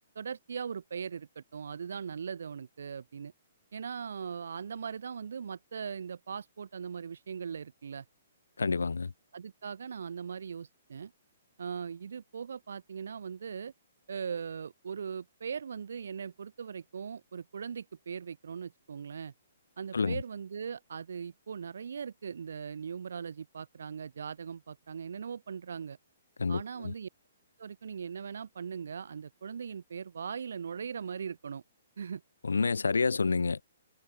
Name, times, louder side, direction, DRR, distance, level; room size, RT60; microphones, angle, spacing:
voice 1, 0.1-3.3 3.7-8.0 9.3-11.1 11.6-13.7 14.1-19.3 19.8-26.0 26.5-27.1 27.6-31.6 32.0-32.2, right 6 dB, 70° right, 2.7 m, -39 dB
voice 2, 8.6-9.1 19.9-20.2 26.4-26.9 32.4-33.6, left 4 dB, 85° left, 0.6 m, -28 dB
hypercardioid pair, 135°, 0 cm